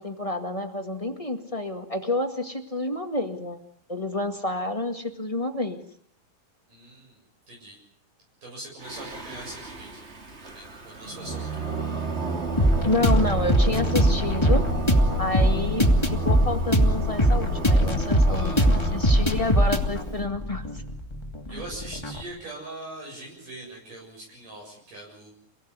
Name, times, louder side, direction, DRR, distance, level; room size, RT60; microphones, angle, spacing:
voice 1, 0.0-3.6 3.9-5.8 12.8-14.6 15.2-20.8 21.5-21.6, left 2 dB, 55° left, 4 dB, 0.3 m, -29 dB
voice 2, 6.7-7.2 7.5-7.8 8.4-10.0 10.4-11.7 18.3-18.9 21.5-25.3, right 1 dB, 55° right, -2 dB, 8.9 m, -41 dB
Singing, 8.8-20.1, right 4 dB, 20° right, 2.0 m, -32 dB
sound 1, 12.6-22.2, equal, 10° left, 2.0 m, -22 dB
29.0 x 18.0 x 9.7 m, 0.63 s
omnidirectional pair, 4.4 m